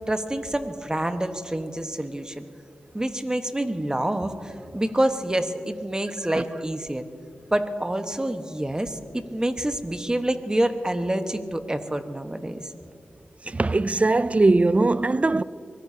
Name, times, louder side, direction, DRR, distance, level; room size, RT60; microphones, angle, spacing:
voice 1, 0.1-2.4 2.9-7.1 7.5-12.7, right 1 dB, 20° right, 1.2 m, -27 dB
voice 2, 13.4-15.4, right 2 dB, 35° right, 0.4 m, -20 dB
24.5 x 18.0 x 2.8 m
cardioid pair, 45°, 4 cm